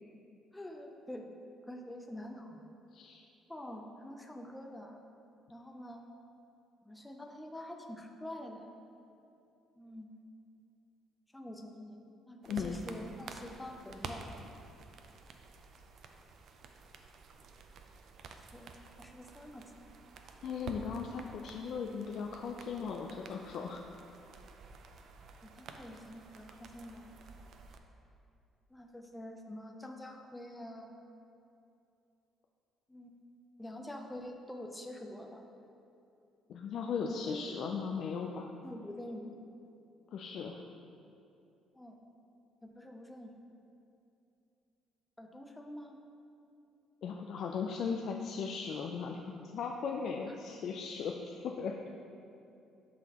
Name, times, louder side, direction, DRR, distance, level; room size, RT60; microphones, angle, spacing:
voice 1, 0.5-1.3 1.7-2.6 3.5-5.0 5.5-6.1 6.8-8.7 9.8-10.1 11.3-12.0 12.3-14.2 18.5-19.7 25.4-27.1 28.7-31.0 32.9-33.2 33.6-35.5 37.1-37.4 37.7-37.9 38.6-39.3 41.7-42.0 42.6-43.3 45.2-46.0 50.3-50.4, left 1 dB, 10° left, 2 dB, 0.6 m, -46 dB
voice 2, 2.9-3.2 12.5-12.8 20.4-23.8 36.5-38.5 40.1-40.7 47.0-49.2 49.5-51.7, left 6 dB, 60° left, 1 dB, 0.4 m, -37 dB
sound 1, 12.4-27.8, right 4 dB, 60° right, 0.5 m, -50 dB
12.0 x 4.0 x 2.9 m, 2.7 s
cardioid pair, 120°, 0 cm